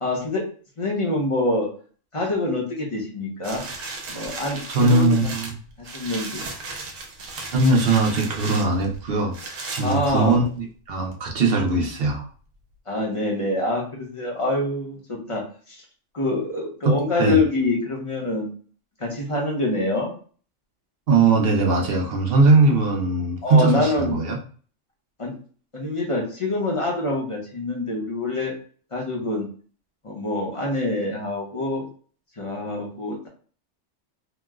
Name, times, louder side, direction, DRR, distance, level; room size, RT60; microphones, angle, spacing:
voice 1, 0.0-0.4 0.8-1.7 2.1-3.6 4.1-5.3 5.8-6.4 9.8-10.4 12.9-15.8 16.1-18.5 19.0-20.1 23.4-24.2 25.2-25.3 25.7-28.5 28.9-29.5 30.0-31.9 32.4-33.3, left 2 dB, 30° left, -1 dB, 0.6 m, -25 dB
sound 1, 3.4-10.6 11.1-11.2, right 3 dB, 75° right, 1.1 m, -36 dB
voice 2, 4.7-5.5 7.5-9.3 9.7-12.2 16.8-17.4 21.1-24.4, right 3 dB, 55° right, 0 dB, 0.8 m, -20 dB
3.0 x 2.0 x 3.5 m, 0.42 s
omnidirectional pair, 1.4 m